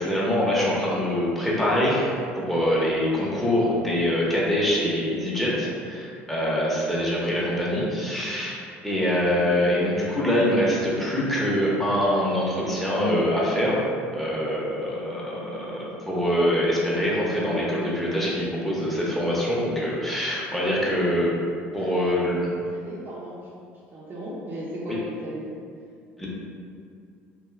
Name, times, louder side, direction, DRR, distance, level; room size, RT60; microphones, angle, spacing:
voice 1, 0.0-21.3 21.7-22.6 24.9-25.0 26.2-26.3, equal, ahead, -6 dB, 0.8 m, -24 dB
voice 2, 7.0-7.4 21.8-23.5 23.9-25.5, equal, 35° right, -8 dB, 0.6 m, -37 dB
2.6 x 2.3 x 3.2 m, 2.3 s
supercardioid pair, 80°, 5 cm